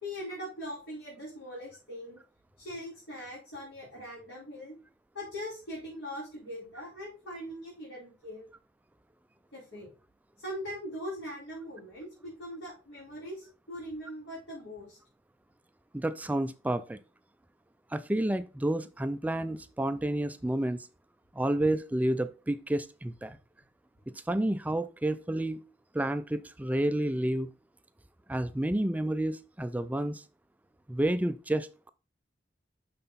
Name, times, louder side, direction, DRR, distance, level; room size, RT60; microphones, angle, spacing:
voice 1, 0.0-2.2 2.6-4.7 5.1-8.5 9.5-9.9 10.4-15.0, equal, 75° left, 4.1 m, -41 dB
voice 2, 15.9-17.0 17.9-20.9 21.3-23.4 24.3-25.6 25.9-27.5 28.3-30.2 30.9-31.9, right 1 dB, 10° right, 0.3 m, -30 dB
6.6 x 5.8 x 4.0 m
head